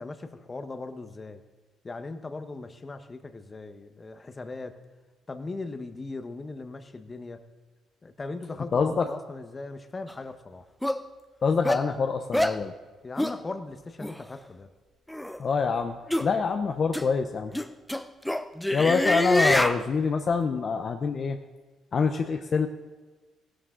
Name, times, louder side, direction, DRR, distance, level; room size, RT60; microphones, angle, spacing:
voice 1, 0.0-1.4 1.8-4.8 5.3-7.4 8.0-10.7 13.0-14.7, left 3 dB, 25° left, 9 dB, 1.0 m, -38 dB
voice 2, 8.7-9.1 11.4-12.7 15.4-17.5 18.7-21.4 21.9-22.7, left 5 dB, 45° left, 6 dB, 0.7 m, -25 dB
sound 1, 10.1-10.2 10.8-11.0 11.6-11.8 12.3-12.6 13.2-13.4 14.0-14.1 15.1-15.4 16.1-16.3 16.9-17.0 17.5-19.8, left 1 dB, 5° left, 0.6 m, -25 dB
16.0 x 11.5 x 3.8 m, 1.3 s
cardioid pair, 100°, 0 cm